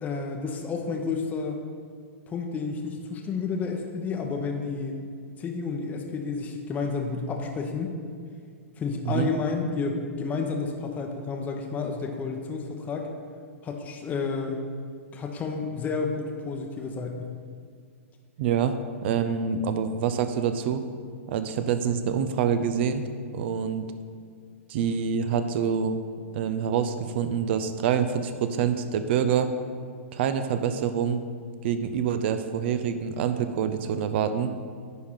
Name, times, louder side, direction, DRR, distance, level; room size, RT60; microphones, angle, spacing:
voice 1, 0.0-1.6 2.3-5.0 5.4-7.9 8.8-13.1 13.6-14.6 15.1-17.3, left 4 dB, 20° left, 3 dB, 0.8 m, -31 dB
voice 2, 18.4-18.8 19.0-20.8 21.3-23.0 23.3-23.9 24.7-26.0 26.3-29.5 30.1-31.2 31.6-34.5, right 7 dB, 50° right, 10 dB, 0.6 m, -26 dB
9.6 x 3.7 x 5.6 m, 2.2 s
hypercardioid pair, 115°, 7 cm